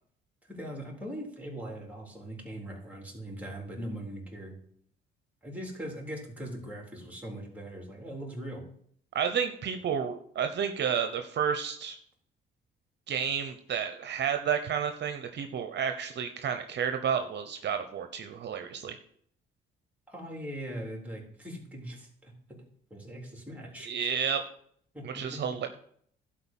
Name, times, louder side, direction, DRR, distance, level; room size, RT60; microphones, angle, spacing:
voice 1, 0.5-4.6 5.4-8.6 20.1-22.3 22.9-24.1 24.9-25.4, right 1 dB, 5° right, -1 dB, 3.7 m, -40 dB
voice 2, 9.1-12.0 13.1-19.0 23.8-24.4 25.0-25.7, right 7 dB, 60° right, 6 dB, 0.9 m, -31 dB
11.5 x 4.5 x 7.4 m, 0.64 s
cardioid pair, 90°, 20 cm